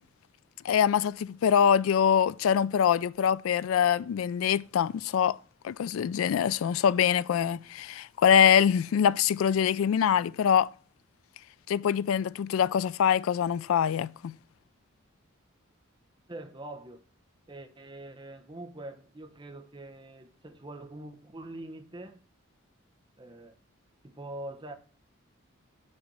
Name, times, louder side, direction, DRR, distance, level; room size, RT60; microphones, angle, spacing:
voice 1, 0.6-5.4 5.6-10.7 11.7-14.3, left 8 dB, 80° left, 0.3 m, -24 dB
voice 2, 16.3-17.0 17.5-22.2 23.2-23.6 24.0-24.7, right 1 dB, 20° right, 0.8 m, -43 dB
6.5 x 4.2 x 6.0 m
head